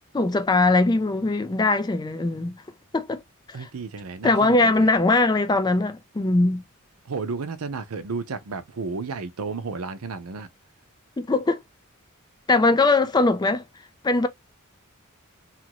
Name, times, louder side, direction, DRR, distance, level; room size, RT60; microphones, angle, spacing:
voice 1, 0.1-2.6 2.9-3.2 3.5-3.7 4.2-6.6 11.2-11.6 12.5-13.6 14.0-14.3, left 2 dB, 20° left, 0.4 m, -21 dB
voice 2, 3.5-5.0 7.1-10.5, right 4 dB, 85° right, 0.6 m, -32 dB
3.0 x 2.4 x 2.9 m
head